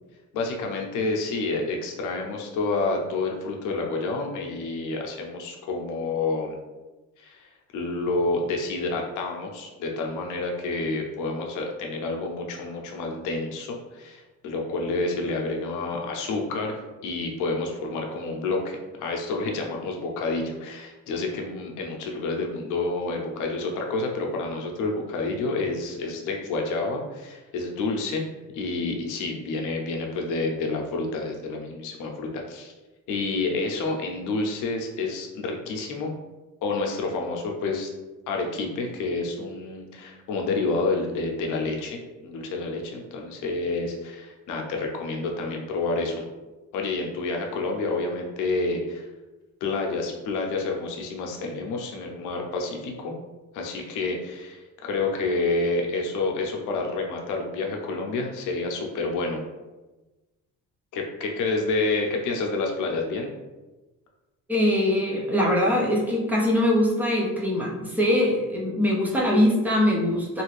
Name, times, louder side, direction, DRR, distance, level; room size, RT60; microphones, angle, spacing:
voice 1, 0.3-6.6 7.2-28.2 28.5-32.7 33.1-36.1 36.6-37.9 38.3-46.3 46.7-49.1 49.6-53.1 53.5-59.4 60.9-63.3, left 3 dB, 65° left, 1 dB, 0.6 m, -29 dB
voice 2, 64.5-70.4, left 1 dB, 5° right, -3 dB, 0.3 m, -22 dB
2.8 x 2.5 x 3.1 m, 1.1 s
cardioid pair, 175°, 33 cm